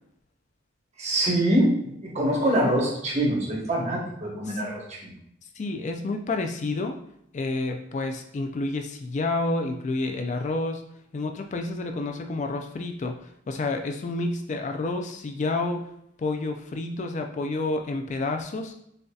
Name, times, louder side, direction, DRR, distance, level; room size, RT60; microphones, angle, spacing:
voice 1, 1.0-5.1, right 1 dB, 35° right, -2 dB, 1.1 m, -24 dB
voice 2, 5.6-7.0 7.3-10.8 11.1-13.2 13.5-15.9 16.2-18.7, left 2 dB, 40° left, 4 dB, 0.3 m, -29 dB
6.6 x 2.7 x 2.3 m, 0.75 s
head